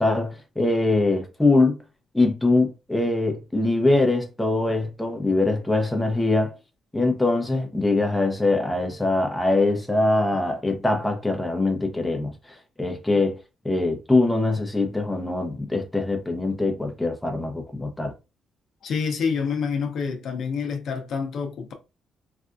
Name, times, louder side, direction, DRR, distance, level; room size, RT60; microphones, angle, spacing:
voice 1, 0.0-1.8 2.1-6.5 6.9-13.4 13.6-18.1, left 2 dB, 10° left, 0.8 m, -23 dB
voice 2, 18.8-21.7, left 5 dB, 65° left, 0.7 m, -27 dB
3.4 x 2.5 x 2.5 m
cardioid pair, 90°, 0 cm